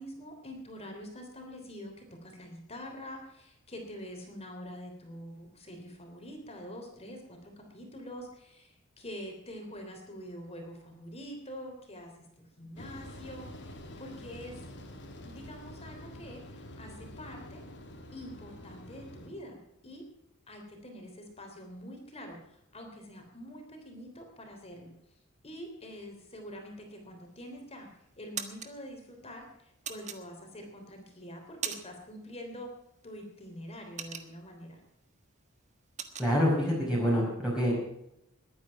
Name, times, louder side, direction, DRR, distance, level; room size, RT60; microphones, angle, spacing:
voice 1, 0.0-14.6 15.2-17.6 18.1-20.0 20.5-24.9 25.4-32.7 33.0-34.8, equal, 30° left, 3 dB, 3.4 m, -45 dB
sound 1, 12.8-19.3, left 1 dB, 55° left, 2.7 m, -47 dB
sound 2, 27.3-27.7 28.1-28.7 29.8-30.7 31.2-32.1 32.4-32.6 33.0-34.7 35.1-35.3 35.5-36.3, right 7 dB, 35° right, 1.4 m, -39 dB
voice 2, 36.2-37.7, equal, 5° right, -5 dB, 5.2 m, -26 dB
21.0 x 9.5 x 5.9 m, 0.81 s
head